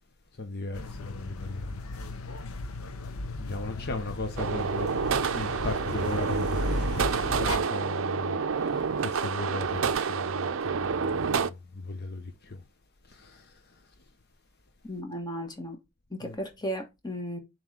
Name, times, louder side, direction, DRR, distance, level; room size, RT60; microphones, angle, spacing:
voice 1, 0.4-1.8 3.4-12.6 13.1-13.8 16.2-16.4, left 2 dB, 50° left, 0.8 m, -37 dB
sound 1, 0.7-7.6, left 2 dB, 80° left, 0.7 m, -35 dB
sound 2, 4.4-11.5, right 6 dB, 65° right, 0.5 m, -28 dB
voice 2, 14.8-15.8 16.1-17.4, equal, 20° left, 1.4 m, -35 dB
7.3 x 3.2 x 5.0 m
head